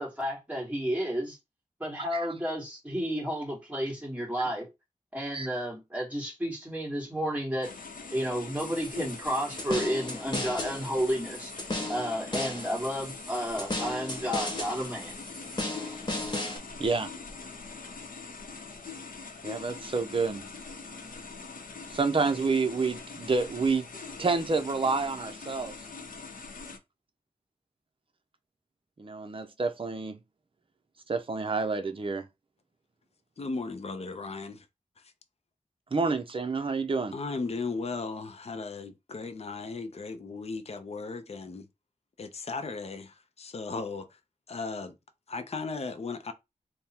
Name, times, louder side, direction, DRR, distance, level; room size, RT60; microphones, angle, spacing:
voice 1, 0.0-1.4 1.8-4.7 5.1-7.7 8.1-11.5 11.9-15.2, equal, 10° right, 1.8 m, -32 dB
sound 1, 7.6-26.8, left 4 dB, 80° left, 0.7 m, -43 dB
sound 2, 8.6-16.6, left 2 dB, 30° left, 1.1 m, -36 dB
voice 2, 16.8-17.1 19.4-20.4 21.9-23.9 24.2-25.8 29.0-30.2 31.1-32.3 35.9-37.1, right 4 dB, 40° right, 0.6 m, -28 dB
voice 3, 33.4-34.7 37.1-41.7 42.2-44.1 44.5-44.9 45.3-46.3, left 4 dB, 50° left, 0.5 m, -36 dB
3.5 x 2.1 x 4.3 m
wide cardioid pair, 95°, 14 cm